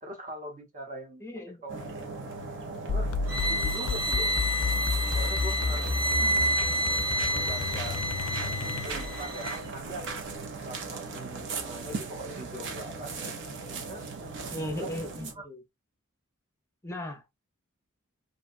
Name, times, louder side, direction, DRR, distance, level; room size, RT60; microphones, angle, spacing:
voice 1, 0.0-1.3 1.6-2.0 2.8-3.1 3.5-4.5 5.1-5.9 7.0-8.0 8.8-10.0 10.6-13.1 13.6-14.1 14.7-15.5, right 1 dB, 35° right, 0.9 m, -42 dB
voice 2, 1.2-1.6 6.1-6.5 14.5-15.6 16.8-17.2, left 1 dB, 15° left, 0.6 m, -37 dB
sound 1, 1.7-15.3, right 4 dB, 60° right, 0.6 m, -39 dB
sound 2, 2.9-9.2, left 4 dB, 85° left, 0.4 m, -32 dB
sound 3, 3.3-9.6, equal, 75° right, 1.6 m, -29 dB
2.7 x 2.2 x 2.4 m
head